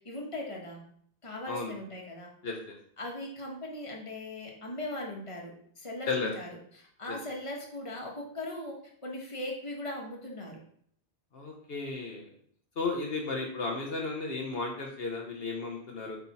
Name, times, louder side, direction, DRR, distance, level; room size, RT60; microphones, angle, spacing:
voice 1, 0.0-0.8 1.2-2.3 3.0-6.5 6.8-10.6, left 1 dB, 30° left, -1 dB, 1.4 m, -39 dB
voice 2, 11.3-12.3 12.8-16.2, left 3 dB, 65° left, 1 dB, 1.2 m, -34 dB
8.2 x 3.5 x 4.2 m, 0.62 s
omnidirectional pair, 1.1 m